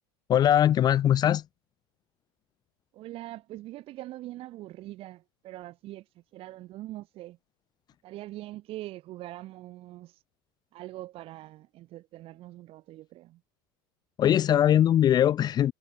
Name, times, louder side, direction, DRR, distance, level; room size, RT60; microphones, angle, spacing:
voice 1, 0.3-1.4 14.2-15.7, left 10 dB, 35° left, 0.5 m, -21 dB
voice 2, 2.9-6.0 6.3-7.4 8.0-10.2 10.7-13.4, right 16 dB, 50° right, 1.4 m, -42 dB
supercardioid pair, 110°, 12 cm